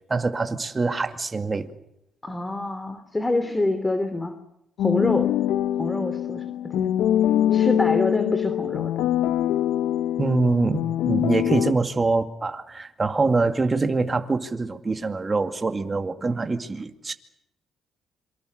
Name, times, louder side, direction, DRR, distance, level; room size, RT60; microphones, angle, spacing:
voice 1, 0.1-1.7 10.2-17.1, right 3 dB, 25° right, 6 dB, 2.3 m, -24 dB
voice 2, 2.2-4.3 4.8-5.3 5.8-6.4 6.8-6.9 7.5-9.0, left 2 dB, 15° left, 9 dB, 2.8 m, -26 dB
sound 1, 4.8-11.7, left 11 dB, 90° left, 1.0 m, -24 dB
27.0 x 24.0 x 6.6 m, 0.82 s
cardioid pair, 90°, 0 cm